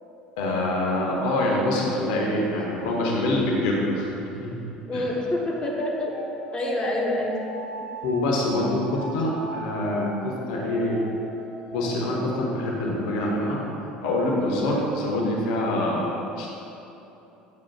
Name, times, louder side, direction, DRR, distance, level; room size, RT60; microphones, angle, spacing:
voice 1, 0.4-4.6 4.9-5.2 8.0-11.0 11.7-13.6 14.0-16.5, left 1 dB, 60° left, -2 dB, 1.1 m, -25 dB
voice 2, 4.9-6.1 6.5-7.3, left 1 dB, 20° left, -2 dB, 1.2 m, -26 dB
sound 1, 6.1-8.3 8.8-12.1, right 2 dB, 50° right, 1.2 m, -41 dB
9.4 x 7.3 x 2.4 m, 3.0 s
figure-of-eight pair, 65°, 5 cm